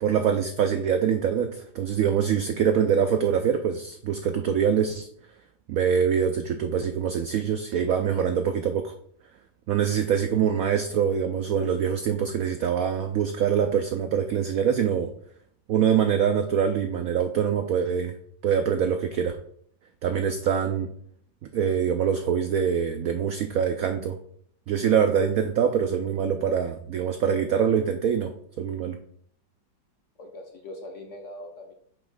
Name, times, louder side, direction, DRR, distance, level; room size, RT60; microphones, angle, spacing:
voice 1, 0.0-5.1 5.7-8.9 9.7-15.1 15.7-18.1 18.4-19.3 20.0-20.9 21.4-24.2 24.7-29.0, right 7 dB, 75° right, 7 dB, 0.8 m, -24 dB
voice 2, 30.2-31.7, left 1 dB, 55° left, 2 dB, 0.9 m, -41 dB
7.2 x 3.0 x 5.3 m, 0.64 s
omnidirectional pair, 2.0 m